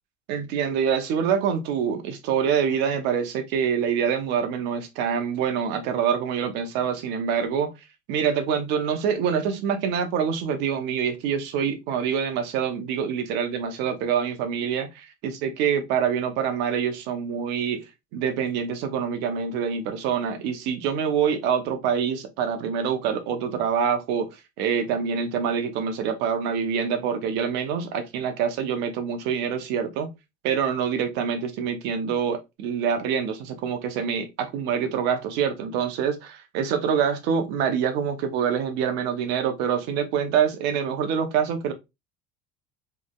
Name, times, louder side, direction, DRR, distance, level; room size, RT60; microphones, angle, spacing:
voice 1, 0.3-7.7 8.1-24.3 24.6-30.1 30.4-41.7, right 7 dB, 70° right, 0.9 m, -26 dB
3.8 x 3.3 x 2.4 m
supercardioid pair, 90°, 18 cm